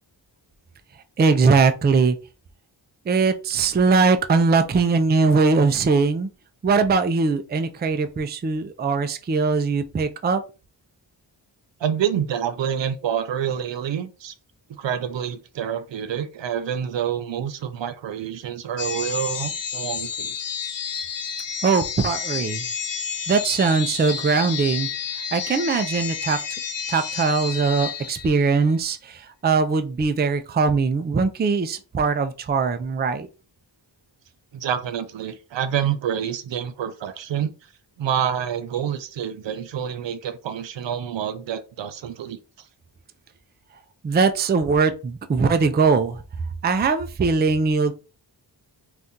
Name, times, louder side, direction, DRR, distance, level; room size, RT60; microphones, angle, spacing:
voice 1, 1.2-2.2 3.1-6.3 6.6-10.4 21.6-22.7 23.3-24.9 25.3-26.4 26.9-33.3 44.0-46.2 46.6-47.9, right 4 dB, 25° right, 0.4 m, -21 dB
voice 2, 11.8-14.3 14.7-20.3 34.5-37.5 38.0-42.4, right 9 dB, 75° right, 0.6 m, -27 dB
sound 1, 18.8-28.6, left 7 dB, 70° left, 0.7 m, -30 dB
2.7 x 2.4 x 3.6 m
cardioid pair, 60°, 45 cm